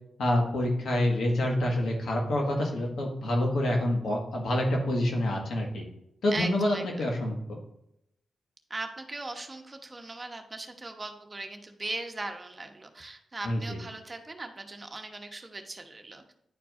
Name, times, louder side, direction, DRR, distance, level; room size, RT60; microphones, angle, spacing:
voice 1, 0.2-5.8 6.2-7.4 13.4-13.8, left 1 dB, 75° left, 0 dB, 1.6 m, -27 dB
voice 2, 6.3-6.8 8.7-16.3, right 2 dB, 35° right, 5 dB, 1.0 m, -39 dB
10.0 x 4.5 x 2.5 m, 0.80 s
supercardioid pair, 50°, 0 cm